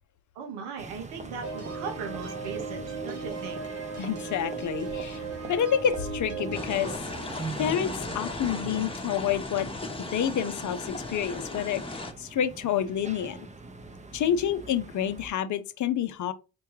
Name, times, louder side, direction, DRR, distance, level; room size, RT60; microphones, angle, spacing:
voice 1, 0.3-3.6, right 6 dB, 80° right, 0.9 m, -38 dB
sound 1, 0.8-15.3, right 3 dB, 20° right, 0.6 m, -42 dB
sound 2, 1.4-7.0, right 4 dB, 35° right, 1.1 m, -36 dB
voice 2, 4.0-6.9 7.6-9.7 10.1-11.8 12.2-13.5 14.1-16.3, left 9 dB, 50° left, 0.6 m, -28 dB
sound 3, 6.5-12.1, left 2 dB, 15° left, 0.9 m, -37 dB
4.5 x 2.2 x 3.1 m
hypercardioid pair, 50°, 39 cm